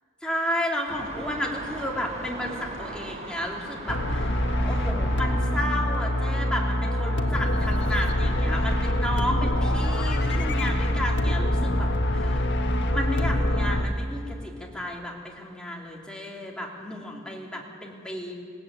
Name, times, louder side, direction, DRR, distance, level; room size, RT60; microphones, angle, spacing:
voice 1, 0.2-4.3 4.6-11.9 12.1-12.4 12.9-18.3, left 1 dB, 5° left, -1 dB, 3.1 m, -32 dB
sound 1, 0.9-9.2, right 2 dB, 35° right, 4.1 m, -40 dB
sound 2, 3.9-13.8, left 1 dB, 60° left, 1.6 m, -25 dB
21.5 x 17.5 x 9.1 m, 2.3 s
head